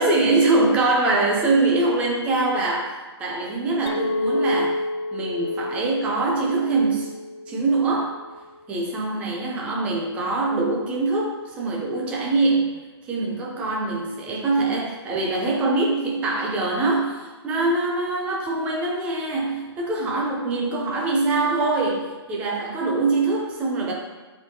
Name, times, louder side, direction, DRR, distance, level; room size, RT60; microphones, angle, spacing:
voice 1, 0.0-4.8 5.1-7.1 7.5-8.2 8.7-12.7 13.0-23.9, right 3 dB, 10° right, -2 dB, 0.7 m, -23 dB
Chink clink, 3.9-8.3, left 2 dB, 70° left, 0.5 m, -29 dB
7.5 x 4.4 x 3.9 m, 1.2 s
hypercardioid pair, 175°, 14 cm